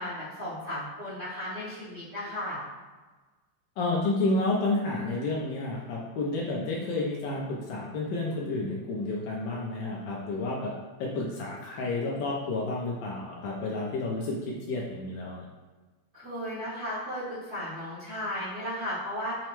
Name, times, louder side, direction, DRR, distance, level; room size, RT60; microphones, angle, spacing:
voice 1, 0.0-2.6 16.1-19.5, equal, 55° right, -12 dB, 0.7 m, -35 dB
voice 2, 3.8-10.7 11.0-15.4, left 2 dB, 75° left, -3 dB, 1.1 m, -30 dB
5.5 x 2.0 x 2.9 m, 1.3 s
omnidirectional pair, 2.4 m